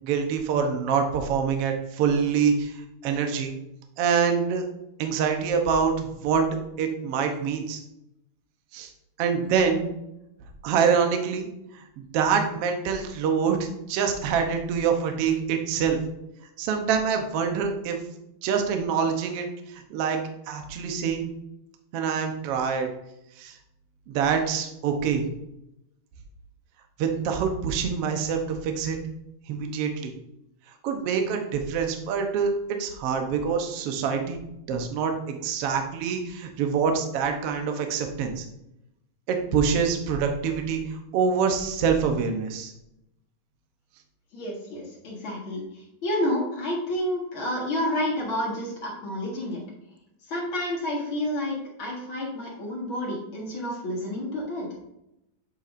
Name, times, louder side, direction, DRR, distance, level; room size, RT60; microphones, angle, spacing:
voice 1, 0.0-2.8 3.0-3.5 4.0-4.6 5.0-6.4 6.8-7.8 8.7-8.9 9.2-9.8 10.6-11.5 12.0-16.0 16.6-18.0 18.4-19.5 19.7-20.2 20.5-21.3 21.9-22.9 23.4-23.6 24.1-25.2 27.0-29.0 29.5-30.1 30.8-32.5 32.8-38.4 39.3-42.7, right 6 dB, 85° right, 4 dB, 1.3 m, -25 dB
voice 2, 44.3-45.6 46.0-49.6 50.3-54.7, left 1 dB, 45° left, -3 dB, 2.0 m, -29 dB
8.1 x 7.0 x 2.6 m, 0.84 s
omnidirectional pair, 4.1 m